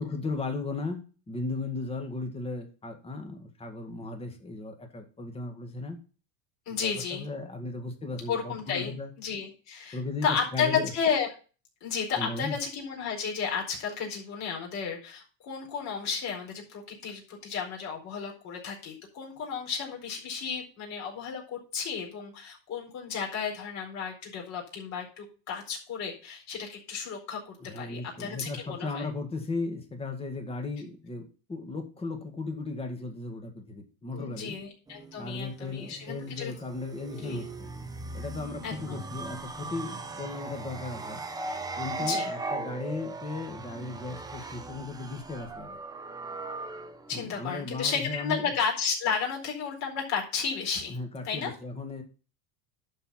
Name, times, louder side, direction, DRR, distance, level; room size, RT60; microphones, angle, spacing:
voice 1, 0.0-6.0 6.7-9.1 9.9-10.9 12.1-12.6 27.6-34.6 35.2-37.7 38.1-41.2 41.8-45.8 47.1-48.5 50.9-52.0, left 3 dB, 15° left, 4 dB, 1.8 m, -36 dB
voice 2, 6.7-7.3 8.3-11.3 11.8-29.1 34.1-36.5 37.2-37.4 38.6-39.0 42.0-42.3 47.1-51.0 51.2-51.5, left 6 dB, 40° left, -1 dB, 4.3 m, -33 dB
sound 1, 34.9-47.2, right 2 dB, 10° right, 0.8 m, -38 dB
11.0 x 4.6 x 5.7 m, 0.36 s
supercardioid pair, 145°, 40 cm